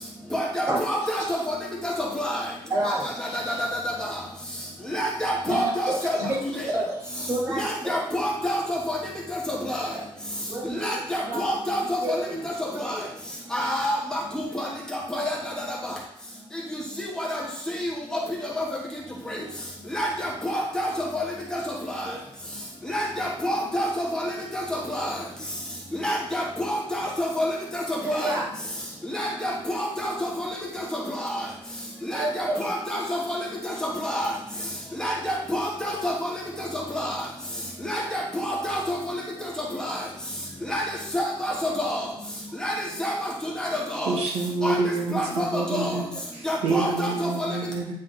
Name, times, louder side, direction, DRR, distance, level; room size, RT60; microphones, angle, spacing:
voice 1, 0.3-1.5 1.8-2.4 3.3-3.4 4.9-6.2 6.5-6.6 7.5-9.0 9.5-9.9 10.7-12.2 12.4-12.5 12.8-12.9 13.5-14.7 15.1-15.4 17.0-17.4 17.8-17.9 18.6-18.7 19.3-19.4 19.9-21.2 21.5-21.6 22.9-25.1 26.0-28.3 29.1-30.8 31.2-31.3 32.1-34.3 35.0-36.1 36.6-37.2 37.8-39.2 39.8-40.0 40.7-40.8 41.1-42.1 42.6-44.1 44.6-44.8 45.1-46.0 46.4-47.5, equal, 5° left, -4 dB, 1.1 m, -28 dB
voice 2, 2.7-3.6 5.5-6.4 6.7-8.0 9.9-10.1 10.5-10.8 11.2-11.4 12.0-12.5 12.7-13.1 17.4-17.5 22.0-22.2 28.0-28.5 28.8-29.0 32.1-32.7 45.3-46.2 46.8-46.9, right 1 dB, 35° right, -4 dB, 2.3 m, -30 dB
voice 3, 44.1-47.9, right 3 dB, 85° right, -1 dB, 1.5 m, -28 dB
9.3 x 3.4 x 4.0 m, 0.71 s
wide cardioid pair, 180°, 10 cm